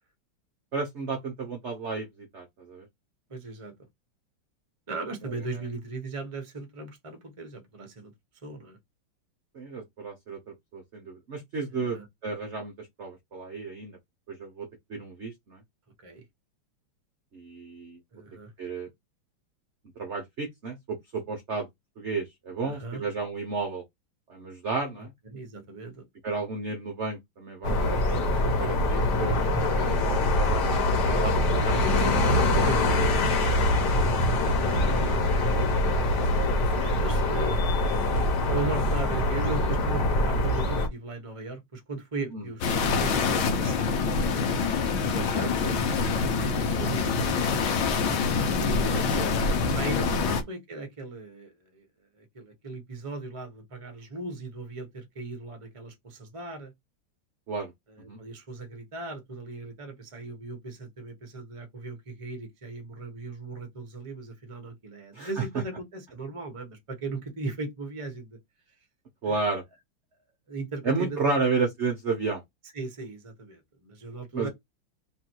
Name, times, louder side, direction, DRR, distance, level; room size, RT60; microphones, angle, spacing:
voice 1, 0.7-2.9 9.5-14.0 14.3-15.6 17.3-18.0 18.6-18.9 20.0-21.7 22.0-23.8 24.3-25.1 26.2-30.5 31.0-31.3 31.6-32.2 38.1-38.3 42.3-42.4 45.1-45.7 46.1-46.3 48.9-49.2 50.1-50.2 57.5-57.7 58.1-58.2 65.1-65.4 69.2-69.6 70.8-72.4 74.3-74.5, right 4 dB, 55° right, 0.8 m, -32 dB
voice 2, 3.3-3.7 4.9-8.1 8.4-8.8 11.7-12.1 16.0-16.2 18.1-18.5 22.6-23.0 25.0-26.0 29.2-29.7 32.6-33.1 34.7-35.3 36.8-37.8 38.5-44.0 45.7-47.6 48.6-49.0 49.6-51.8 52.1-56.7 57.9-68.4 69.2-69.5 70.5-71.4 72.7-74.5, right 3 dB, 25° right, 0.8 m, -38 dB
sound 1, 27.6-40.9, left 1 dB, 60° left, 1.6 m, -24 dB
sound 2, 42.6-50.4, left 4 dB, 80° left, 1.6 m, -25 dB
3.6 x 2.5 x 4.5 m
omnidirectional pair, 2.2 m